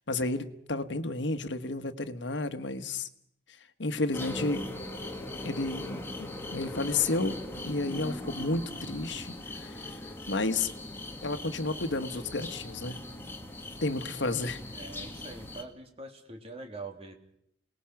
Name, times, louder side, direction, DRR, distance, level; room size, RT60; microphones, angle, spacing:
voice 1, 0.1-3.1 3.8-4.6 5.4-7.4 7.6-10.0 10.3-10.7 11.2-13.0 13.8-14.6, left 2 dB, 80° left, 10 dB, 1.4 m, -31 dB
sound 1, 4.1-15.6, left 1 dB, 15° left, 1.8 m, -40 dB
voice 2, 7.1-7.5 14.7-17.1, right 3 dB, 35° right, 4 dB, 2.6 m, -44 dB
28.0 x 19.5 x 5.9 m, 0.73 s
head